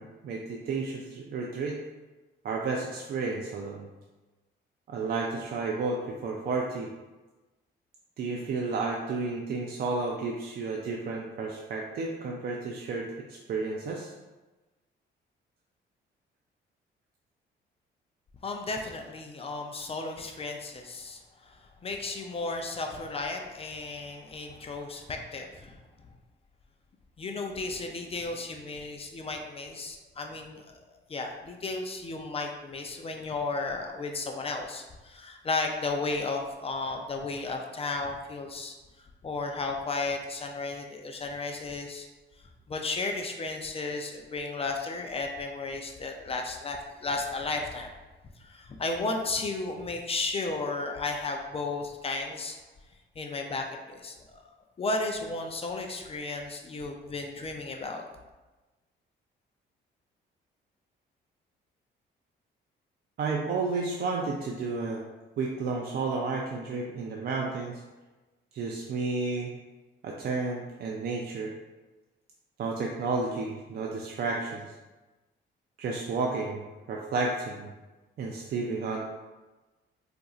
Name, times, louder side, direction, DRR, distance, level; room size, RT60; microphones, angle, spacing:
voice 1, 0.0-1.8 2.4-3.9 4.9-6.9 8.2-14.1 63.2-65.0 65.4-67.8 68.5-69.5 70.0-71.5 72.6-74.7 75.8-77.7 78.2-79.0, right 3 dB, 55° right, -1 dB, 0.4 m, -32 dB
voice 2, 18.4-25.8 27.2-38.7 39.2-42.1 42.7-47.9 48.4-52.6 53.2-54.4 54.8-58.0, left 3 dB, 30° left, 3 dB, 0.4 m, -34 dB
4.0 x 2.5 x 2.4 m, 1.2 s
cardioid pair, 90°, 20 cm